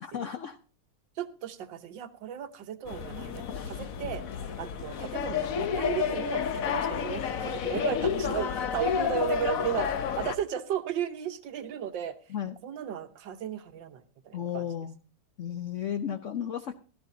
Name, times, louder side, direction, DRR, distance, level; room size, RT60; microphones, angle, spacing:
voice 1, 0.0-0.6 3.5-3.7 7.7-7.8 12.3-12.6 14.3-15.0 15.4-16.7, left 9 dB, 85° left, 8 dB, 0.6 m, -34 dB
voice 2, 1.2-4.2 4.6-12.2 12.6-14.7, right 9 dB, 65° right, 9 dB, 1.6 m, -35 dB
sound 1, 2.9-10.4, left 7 dB, 60° left, 0.9 m, -30 dB
16.5 x 13.0 x 2.7 m, 0.36 s
omnidirectional pair, 2.2 m